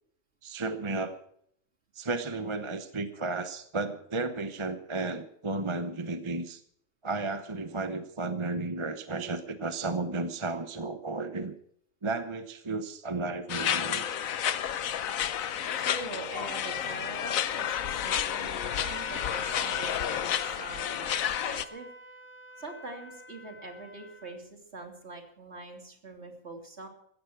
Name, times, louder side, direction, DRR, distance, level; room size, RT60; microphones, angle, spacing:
voice 1, 0.4-1.2 1.9-6.6 7.0-11.6 12.0-14.0, right 3 dB, 25° right, 9 dB, 0.9 m, -33 dB
sound 1, 13.5-21.7, left 9 dB, 90° left, 1.2 m, -31 dB
voice 2, 15.8-21.9 22.5-26.9, right 3 dB, 55° right, 3 dB, 3.2 m, -43 dB
Wind instrument woodwind instrument, 18.6-24.4, left 1 dB, 10° left, 1.4 m, -46 dB
16.0 x 14.5 x 4.7 m, 0.67 s
omnidirectional pair, 1.4 m